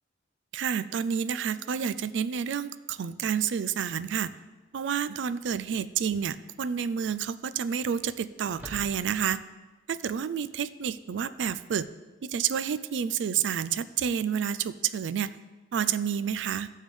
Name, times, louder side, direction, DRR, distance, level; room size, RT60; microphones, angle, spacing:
voice 1, 0.5-4.3 4.7-9.4 9.9-11.9 12.2-15.4 15.7-16.7, right 7 dB, 80° right, 14 dB, 0.4 m, -29 dB
sound 1, 6.0-6.2 6.6-6.7 8.5-9.4, equal, 10° right, 1.0 m, -46 dB
14.5 x 7.2 x 3.2 m, 1.2 s
head